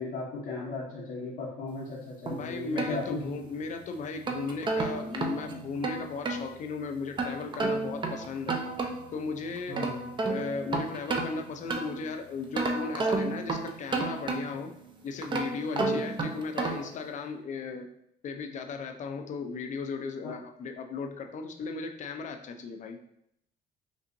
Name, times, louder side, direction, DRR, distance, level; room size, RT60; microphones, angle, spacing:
voice 1, 0.0-3.3 9.7-10.1 15.7-16.0 20.2-20.3, left 3 dB, 80° left, -6 dB, 1.0 m, -36 dB
voice 2, 2.3-8.6 9.1-9.9 10.3-14.8 15.0-17.9 18.2-23.0, left 4 dB, 45° left, 5 dB, 0.5 m, -36 dB
sound 1, 2.3-3.6 4.0-6.5 7.2-9.2 9.6-12.1 12.5-14.7 15.2-17.0, right 3 dB, 30° right, 0.6 m, -32 dB
5.3 x 2.7 x 2.6 m, 0.76 s
cardioid pair, 110°, 17 cm